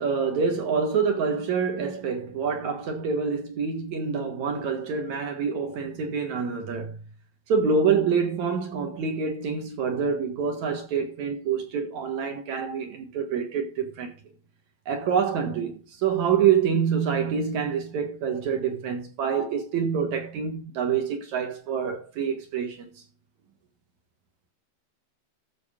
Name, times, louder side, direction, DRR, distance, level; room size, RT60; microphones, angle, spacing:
voice 1, 0.0-7.0 7.5-14.1 14.9-22.9, right 6 dB, 60° right, 2.5 m, -26 dB
14.0 x 6.2 x 3.6 m
omnidirectional pair, 4.3 m